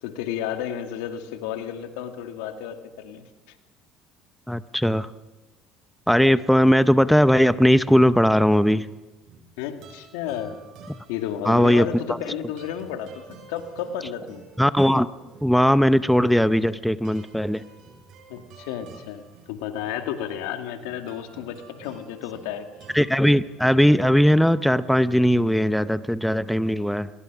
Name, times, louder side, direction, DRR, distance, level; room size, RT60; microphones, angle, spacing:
voice 1, 0.0-3.2 9.6-10.6 11.1-14.4 18.3-22.7, left 9 dB, 85° left, 6 dB, 2.1 m, -32 dB
voice 2, 4.5-5.1 6.1-8.9 11.4-11.9 14.6-15.1 15.4-17.6 22.9-27.1, equal, ahead, 14 dB, 0.7 m, -19 dB
sound 1, 8.8-23.8, right 4 dB, 60° right, 5.5 m, -50 dB
21.0 x 21.0 x 6.2 m, 1.2 s
supercardioid pair, 105°, 0 cm